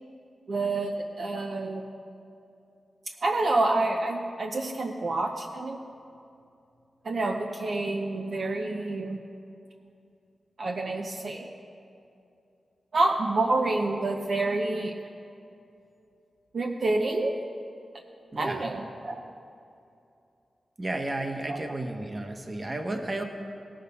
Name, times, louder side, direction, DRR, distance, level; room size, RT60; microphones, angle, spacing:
voice 1, 0.5-1.9 3.2-5.8 7.0-9.2 10.6-11.5 12.9-14.9 16.5-17.4 18.4-19.2 21.5-21.6, right 2 dB, 60° right, 2 dB, 0.8 m, -28 dB
voice 2, 18.3-18.7 20.8-23.2, right 2 dB, 30° right, 4 dB, 1.3 m, -32 dB
17.5 x 6.6 x 5.4 m, 2.6 s
cardioid pair, 70°, 0 cm